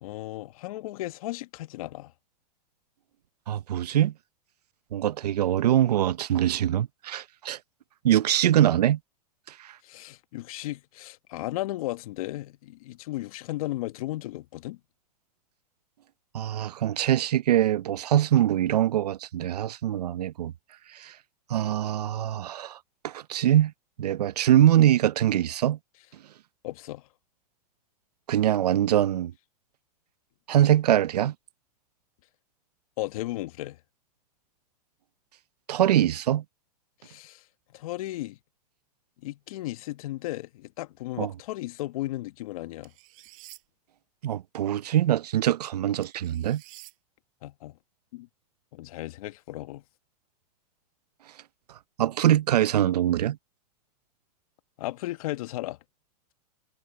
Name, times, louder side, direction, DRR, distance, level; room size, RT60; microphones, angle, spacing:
voice 1, 0.0-2.1 9.8-14.8 26.6-27.0 33.0-33.8 37.0-37.4 37.7-38.4 39.2-42.9 47.4-47.8 48.1-48.3 48.7-49.8 54.8-55.8, left 17 dB, 60° left, 1.6 m, -35 dB
voice 2, 3.5-4.1 4.9-7.6 8.0-9.0 9.6-9.7 16.3-20.5 20.9-21.1 21.5-22.8 23.0-23.7 24.0-25.8 28.3-29.3 30.5-31.3 35.7-36.4 41.2-41.3 44.2-46.6 52.0-53.4, right 11 dB, 80° right, 0.8 m, -23 dB
sound 1, 42.8-43.6 46.0-46.9, right 21 dB, 55° right, 5.7 m, -49 dB
hypercardioid pair, 120°, 20 cm